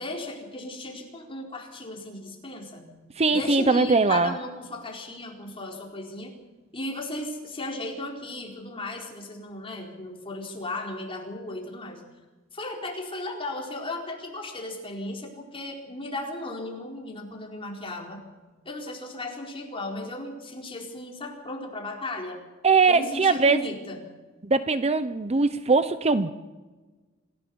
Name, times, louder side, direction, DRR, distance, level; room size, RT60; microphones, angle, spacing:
voice 1, 0.0-3.0 3.3-6.3 6.7-12.0 12.5-18.2 18.6-22.4 22.9-24.0, left 2 dB, 25° left, 0 dB, 4.4 m, -36 dB
voice 2, 3.2-4.3 22.6-23.6 24.4-26.3, right 4 dB, 30° right, 12 dB, 0.8 m, -21 dB
27.0 x 15.5 x 7.0 m, 1.3 s
head